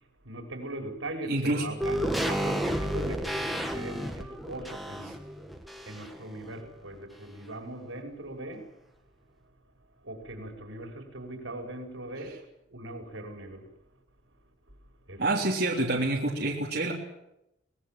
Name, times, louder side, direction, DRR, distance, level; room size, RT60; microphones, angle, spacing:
voice 1, 0.2-5.2 5.9-8.7 10.0-13.7 15.1-15.2, right 1 dB, 85° right, 5.8 m, -40 dB
voice 2, 1.3-1.7 15.2-16.9, right 2 dB, 55° right, 3.5 m, -27 dB
sound 1, 1.8-6.3 6.6-6.7, equal, ahead, 2.1 m, -31 dB
24.5 x 19.0 x 7.8 m
head